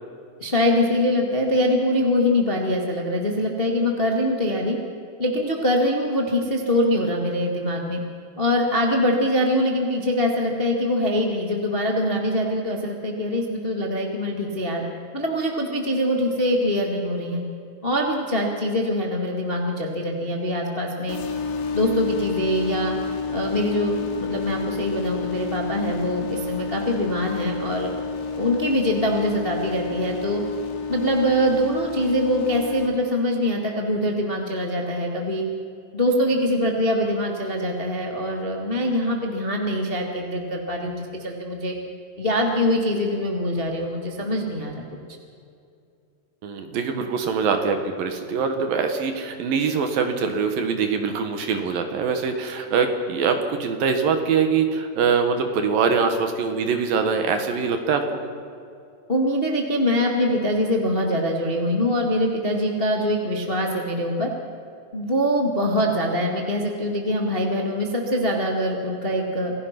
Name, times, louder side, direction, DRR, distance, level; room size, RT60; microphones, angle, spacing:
voice 1, 0.4-4.8 5.2-8.0 8.4-14.8 15.1-17.4 17.8-21.2 21.7-22.9 23.3-27.9 28.3-30.4 30.9-35.5 35.9-41.7 42.2-44.8 59.1-64.3 64.9-69.5, left 1 dB, 35° left, 0 dB, 0.8 m, -23 dB
sound 1, 21.1-32.9, left 4 dB, 85° left, 4.2 m, -30 dB
voice 2, 46.4-58.3, right 5 dB, 65° right, 6 dB, 2.8 m, -23 dB
27.0 x 17.0 x 6.0 m, 2.5 s
omnidirectional pair, 5.0 m